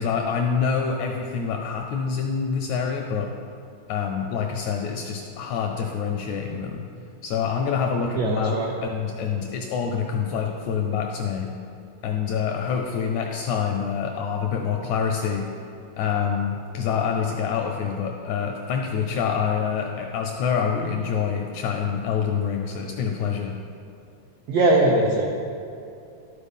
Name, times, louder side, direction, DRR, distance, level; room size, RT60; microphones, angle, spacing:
voice 1, 0.0-3.3 3.9-6.8 7.2-8.6 8.8-11.5 12.0-15.5 16.0-23.5, left 6 dB, 80° left, 2 dB, 1.7 m, -26 dB
voice 2, 8.1-8.7 24.5-25.3, right 2 dB, 85° right, -1 dB, 1.3 m, -20 dB
12.5 x 4.3 x 5.4 m, 2.6 s
omnidirectional pair, 3.8 m